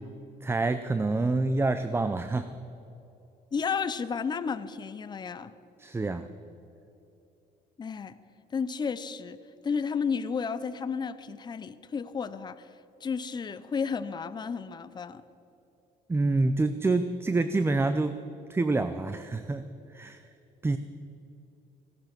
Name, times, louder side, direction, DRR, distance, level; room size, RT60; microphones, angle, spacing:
voice 1, 0.4-2.6 5.8-6.3 16.1-20.2 20.6-20.8, right 3 dB, 15° right, 11 dB, 0.5 m, -27 dB
voice 2, 3.5-5.5 7.8-8.2 8.5-9.4 9.6-12.7 13.0-15.2, left 6 dB, 25° left, 12 dB, 0.6 m, -32 dB
16.5 x 11.5 x 6.0 m, 2.9 s
cardioid pair, 110°, 17 cm